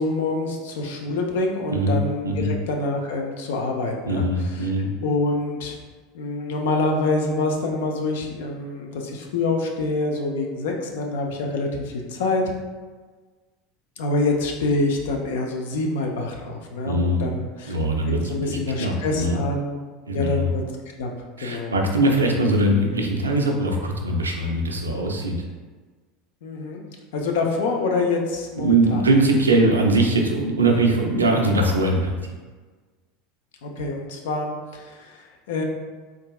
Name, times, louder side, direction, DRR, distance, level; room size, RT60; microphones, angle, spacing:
voice 1, 0.0-4.7 5.0-5.8 6.1-12.5 14.0-17.8 18.1-19.8 20.1-20.6 21.0-21.1 21.4-21.7 26.4-26.8 27.1-29.0 33.6-35.6, left 2 dB, 65° left, 1 dB, 0.4 m, -26 dB
voice 2, 4.1-4.9 16.8-17.4 17.7-19.4 20.1-20.5 21.4-25.4 28.6-32.2, right 2 dB, 80° right, 1 dB, 0.4 m, -21 dB
3.8 x 2.4 x 2.3 m, 1.4 s
figure-of-eight pair, 75°, 0 cm